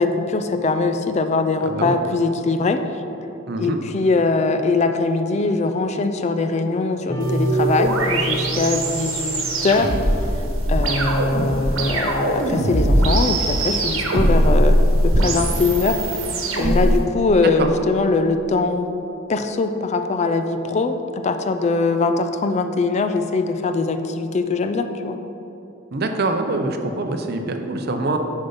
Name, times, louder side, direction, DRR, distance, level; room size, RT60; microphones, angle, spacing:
voice 1, 0.0-2.8 3.6-9.9 10.7-16.0 16.5-18.9 19.3-25.2, left 3 dB, 35° left, 8 dB, 0.3 m, -21 dB
voice 2, 1.6-2.0 3.5-3.8 17.6-17.7 25.9-28.2, right 2 dB, 50° right, 5 dB, 0.6 m, -24 dB
sound 1, 7.1-10.6, equal, 20° left, 0.9 m, -29 dB
sound 2, 7.2-17.0, right 1 dB, 80° right, 1.1 m, -21 dB
6.9 x 5.4 x 5.5 m, 3.0 s
head